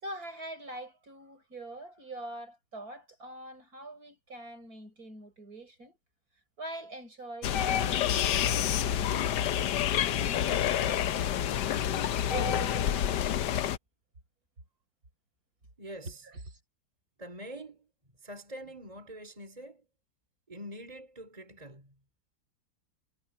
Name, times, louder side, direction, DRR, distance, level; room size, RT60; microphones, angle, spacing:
voice 1, 0.0-6.0 6.6-11.3 12.3-13.2 16.0-16.6, right 2 dB, 50° right, 6.2 m, -44 dB
sound 1, 7.4-13.8, left 10 dB, 70° left, 1.4 m, -28 dB
voice 2, 15.8-16.2 17.2-17.9 18.2-19.9 20.5-22.0, equal, 20° right, 3.8 m, -45 dB
omnidirectional pair, 2.0 m